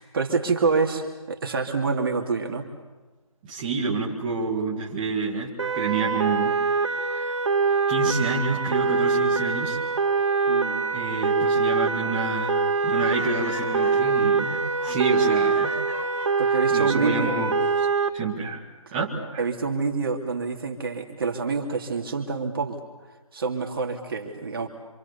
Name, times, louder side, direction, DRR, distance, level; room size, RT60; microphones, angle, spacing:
voice 1, 0.0-2.7 10.5-10.9 16.4-17.4 19.4-22.8 23.3-24.7, right 4 dB, 40° right, 3 dB, 2.6 m, -27 dB
voice 2, 3.4-6.5 7.0-7.3 7.9-9.8 10.9-12.5 12.8-15.7 16.7-17.5 17.8-17.9 18.1-18.6 18.9-19.4, right 4 dB, 15° right, -4 dB, 2.1 m, -28 dB
sound 1, 5.6-18.1, right 4 dB, 55° right, 2.3 m, -24 dB
Laughter, 12.8-16.9, left 4 dB, 20° left, 1.7 m, -42 dB
26.5 x 26.0 x 7.0 m, 1.2 s
figure-of-eight pair, 165°, 18 cm